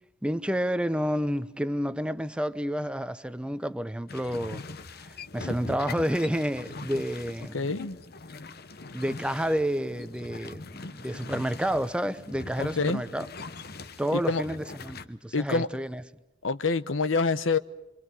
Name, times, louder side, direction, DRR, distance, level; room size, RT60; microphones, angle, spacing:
voice 1, 0.2-4.6 5.0-7.6 8.9-13.3 14.0-16.0, equal, 5° right, 0.7 m, -30 dB
sound 1, 4.1-15.0, left 3 dB, 55° left, 1.1 m, -42 dB
voice 2, 7.5-8.0 10.8-10.9 12.6-13.0 14.1-14.4 15.3-15.7 16.4-17.6, left 4 dB, 90° left, 0.9 m, -26 dB
27.0 x 24.5 x 5.5 m
head